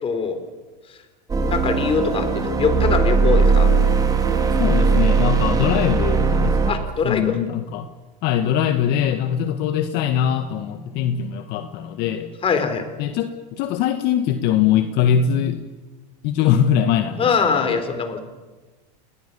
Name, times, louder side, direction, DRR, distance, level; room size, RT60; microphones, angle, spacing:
voice 1, 0.0-0.4 1.5-3.7 6.7-7.4 12.4-12.9 16.4-16.6 17.2-18.2, left 5 dB, 25° left, 9 dB, 4.0 m, -22 dB
sound 1, 1.3-6.7, right 4 dB, 15° right, 3.2 m, -19 dB
voice 2, 4.6-7.9 8.2-12.3 13.0-13.3 13.6-15.6 16.2-17.3 17.6-17.8, left 9 dB, 50° left, 8 dB, 1.7 m, -22 dB
29.0 x 20.5 x 7.0 m, 1.2 s
supercardioid pair, 125°, 21 cm